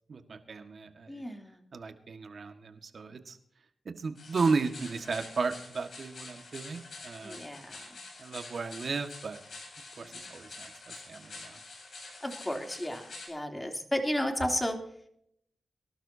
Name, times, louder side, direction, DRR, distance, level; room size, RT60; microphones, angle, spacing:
voice 1, 0.1-1.2 1.7-3.4 3.8-7.4 8.2-9.4 10.0-11.6, right 4 dB, 60° right, 7 dB, 1.7 m, -34 dB
voice 2, 1.1-1.6 7.2-7.8 10.0-10.3 12.2-14.8, left 1 dB, 15° left, 3 dB, 3.2 m, -33 dB
sound 1, 4.2-13.3, left 3 dB, 65° left, 7.0 m, -47 dB
23.5 x 12.0 x 2.8 m, 0.69 s
cardioid pair, 55°, 0 cm